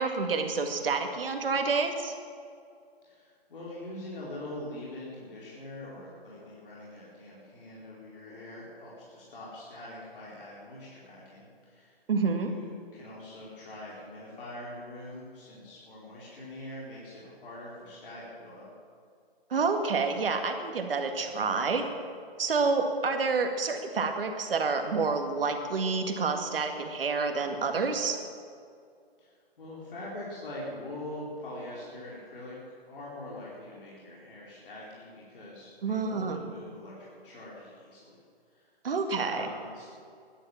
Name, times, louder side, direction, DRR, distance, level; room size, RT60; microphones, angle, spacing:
voice 1, 0.0-2.1 12.1-12.5 19.5-21.8 22.4-28.2 35.8-36.4 38.8-39.5, right 4 dB, 65° right, 5 dB, 2.0 m, -28 dB
voice 2, 3.0-12.0 12.4-18.7 29.2-29.3 29.6-38.1 38.5-38.7 39.2-39.9, left 1 dB, 60° left, -6 dB, 4.5 m, -43 dB
12.5 x 11.5 x 7.5 m, 2.3 s
hypercardioid pair, 160°, 30 cm